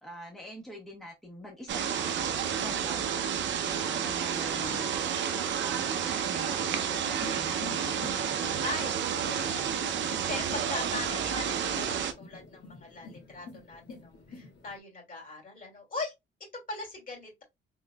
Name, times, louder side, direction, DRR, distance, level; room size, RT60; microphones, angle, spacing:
voice 1, 0.0-3.1 3.6-4.9 5.3-8.7 9.2-9.7, equal, ahead, 1.3 m, -45 dB
sound 1, 1.7-12.1, right 8 dB, 65° right, 0.6 m, -30 dB
sound 2, 7.1-14.8, left 3 dB, 60° left, 1.6 m, -48 dB
voice 2, 8.6-16.1 16.7-17.4, left 3 dB, 45° left, 2.4 m, -40 dB
3.8 x 3.6 x 2.2 m
cardioid pair, 90°, 20 cm